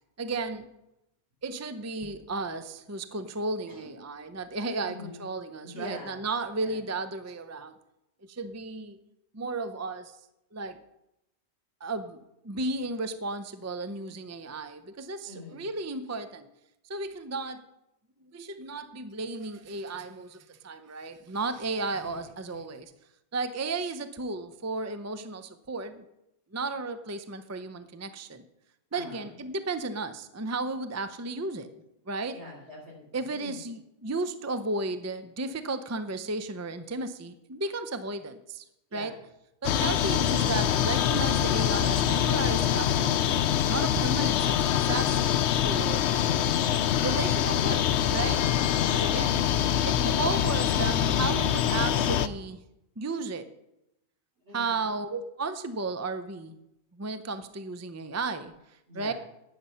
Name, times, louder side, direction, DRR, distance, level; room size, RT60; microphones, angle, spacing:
voice 1, 0.2-0.7 1.4-7.8 8.2-9.0 9.3-10.2 10.5-10.8 11.8-16.5 16.8-17.7 18.2-22.9 23.3-26.0 26.5-28.4 28.9-31.7 32.1-32.4 33.1-38.6 38.9-39.1 39.6-46.1 47.0-48.4 48.9-49.4 49.8-52.6 53.0-53.5 54.5-56.6 56.9-59.1, right 3 dB, 20° right, 11 dB, 0.5 m, -34 dB
voice 2, 4.8-5.2 5.6-6.2 6.6-6.8 15.3-15.7 22.0-22.1 28.9-29.3 32.3-33.0 33.3-33.6 38.9-39.1 46.1-46.5 54.4-55.0 58.9-59.1, left 2 dB, 75° right, -1 dB, 4.0 m, -43 dB
sound 1, 39.6-52.3, left 10 dB, 85° left, 0.9 m, -25 dB
12.0 x 9.6 x 5.6 m, 0.85 s
omnidirectional pair, 1.1 m